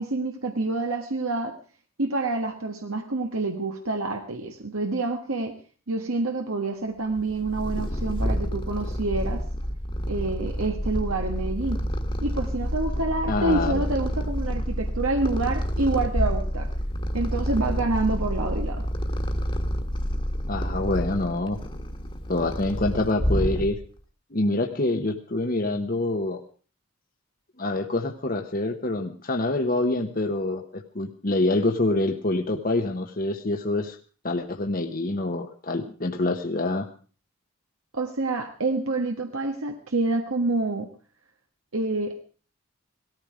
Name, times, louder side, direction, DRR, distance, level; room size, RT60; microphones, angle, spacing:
voice 1, 0.0-1.5 2.0-5.5 5.9-9.4 10.1-11.8 12.2-16.7 17.1-18.8 37.9-40.9 41.7-42.2, right 2 dB, 85° right, 4 dB, 1.5 m, -27 dB
Purr, 7.2-24.0, equal, 25° left, 1.5 m, -28 dB
voice 2, 13.3-13.8 20.5-21.6 22.3-23.8 24.3-26.4 27.6-34.0 34.2-36.9, left 2 dB, 40° left, 4 dB, 1.0 m, -26 dB
18.0 x 14.0 x 5.0 m, 0.40 s
head